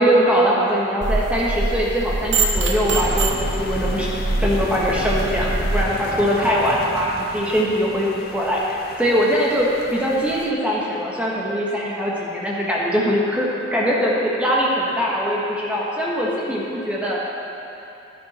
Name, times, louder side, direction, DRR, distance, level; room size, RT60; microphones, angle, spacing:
voice 1, 0.0-4.1 4.4-17.2, equal, 5° right, -5 dB, 1.4 m, -21 dB
sound 1, 1.0-5.8, right 2 dB, 65° right, 0.9 m, -23 dB
sound 2, 2.9-10.5, left 3 dB, 50° left, 0.6 m, -34 dB
11.0 x 11.0 x 4.4 m, 2.9 s
head